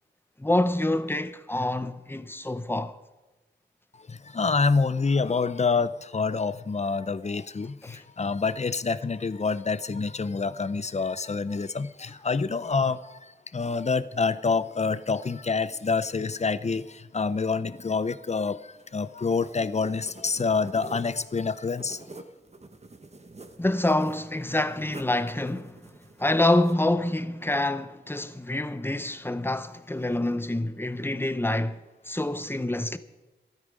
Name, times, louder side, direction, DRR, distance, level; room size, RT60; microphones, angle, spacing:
voice 1, 0.4-2.9 7.8-8.0 23.6-25.8 26.2-31.8 32.1-33.0, left 1 dB, 10° left, 0.9 m, -26 dB
voice 2, 4.1-13.2 13.5-22.0, left 4 dB, 35° left, 0.6 m, -27 dB
sound 1, 18.7-26.7, right 2 dB, 35° right, 1.2 m, -48 dB
15.5 x 13.0 x 5.3 m
wide cardioid pair, 70°, 19 cm